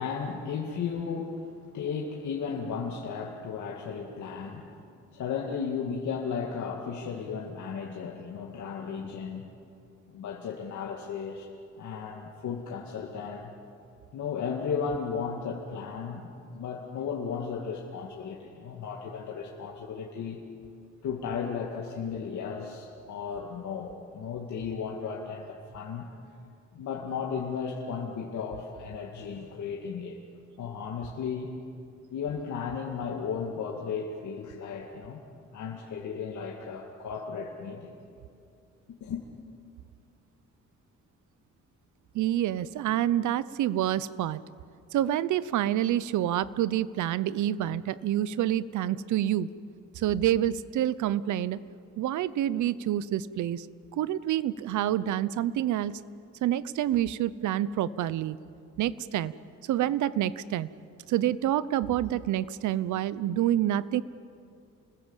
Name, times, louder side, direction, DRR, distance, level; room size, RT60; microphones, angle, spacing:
voice 1, 0.0-4.9 5.1-9.5 10.1-11.5 11.8-13.5 14.1-20.4 21.0-26.1 26.7-30.2 30.6-31.5 32.1-35.2 35.5-37.9 39.0-39.2, left 6 dB, 80° left, -1 dB, 2.4 m, -35 dB
voice 2, 42.1-44.4 44.9-49.5 49.9-51.6 52.0-53.7 54.0-56.0 56.4-58.4 58.8-59.3 59.7-60.7 61.1-64.0, right 12 dB, 85° right, 18 dB, 0.8 m, -27 dB
28.5 x 21.0 x 7.4 m, 2.4 s
cardioid pair, 90°, 29 cm